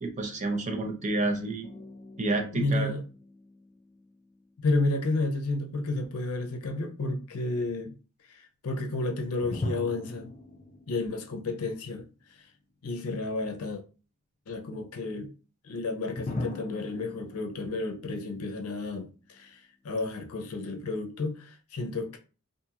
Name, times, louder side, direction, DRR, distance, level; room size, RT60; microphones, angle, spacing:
voice 1, 0.0-1.7 2.2-2.9, right 2 dB, 30° right, 0.5 m, -29 dB
sound 1, 1.6-4.9 9.4-12.5 12.8-12.9 16.2-19.5, left 2 dB, 30° left, 0.4 m, -41 dB
voice 2, 2.5-3.0 4.6-7.9 8.3-10.3 10.9-12.0 12.8-13.8 14.5-15.3 15.6-19.6 19.8-22.2, left 2 dB, 85° left, 0.5 m, -31 dB
2.5 x 2.4 x 2.8 m
head